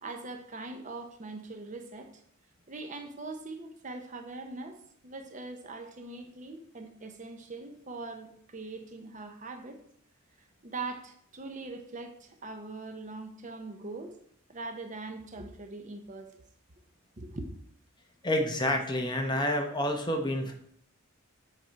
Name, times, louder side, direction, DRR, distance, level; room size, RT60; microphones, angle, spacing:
voice 1, 0.0-2.2 2.7-9.8 10.6-14.1 14.5-16.3 17.2-17.5, right 3 dB, 35° right, 6 dB, 0.8 m, -41 dB
voice 2, 18.2-20.5, left 1 dB, 20° left, 3 dB, 0.8 m, -28 dB
7.8 x 4.3 x 4.6 m, 0.64 s
head